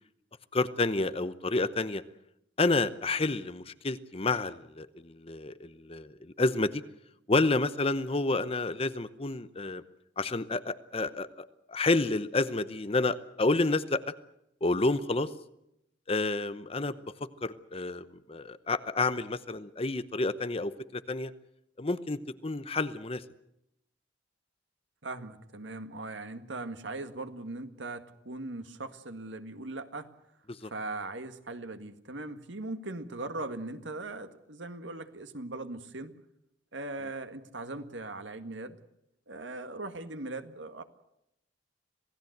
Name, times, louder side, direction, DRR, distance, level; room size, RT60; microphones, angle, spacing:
voice 1, 0.5-2.0 2.6-6.8 7.3-9.8 10.2-14.0 14.6-15.3 16.1-16.9 17.4-21.3 21.8-23.2 30.6-30.7, left 3 dB, 30° left, 13 dB, 0.8 m, -29 dB
voice 2, 25.0-30.1 30.6-36.2 36.7-38.8 39.3-40.8, right 2 dB, 85° right, 9 dB, 1.9 m, -39 dB
26.5 x 17.5 x 8.0 m, 0.82 s
head